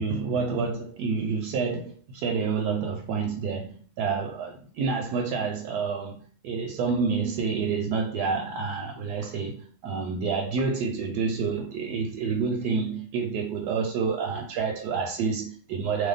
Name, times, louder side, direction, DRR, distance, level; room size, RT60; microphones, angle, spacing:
voice 1, 0.0-16.1, right 5 dB, 85° right, 1.1 m, -28 dB
2.8 x 2.2 x 3.8 m
omnidirectional pair, 1.7 m